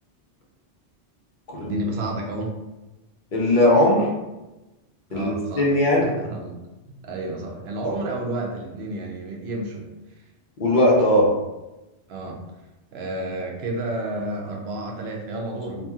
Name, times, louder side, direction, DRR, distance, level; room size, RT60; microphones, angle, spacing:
voice 1, 1.6-2.5 5.1-5.7 6.0-6.6 6.9-10.2 12.1-12.4 12.9-15.8, right 1 dB, 65° right, 0 dB, 0.8 m, -31 dB
voice 2, 3.3-4.1 5.1-6.1 10.6-11.3, left 1 dB, 50° left, -3 dB, 0.8 m, -19 dB
2.8 x 2.7 x 2.3 m, 1.0 s
omnidirectional pair, 1.2 m